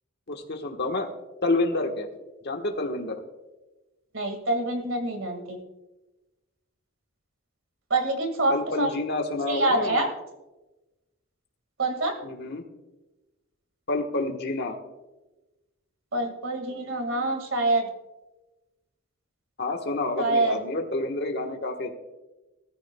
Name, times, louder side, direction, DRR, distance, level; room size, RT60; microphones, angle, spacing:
voice 1, 0.3-1.1 1.4-2.1 2.4-3.2 8.5-10.1 12.2-12.6 13.9-14.8 19.6-21.9, left 2 dB, 50° left, 4 dB, 1.3 m, -28 dB
voice 2, 4.1-5.6 7.9-8.9 9.5-10.1 11.8-12.1 16.1-17.9 20.2-20.6, right 2 dB, 70° right, 5 dB, 2.0 m, -26 dB
18.0 x 14.0 x 2.3 m, 1.1 s
head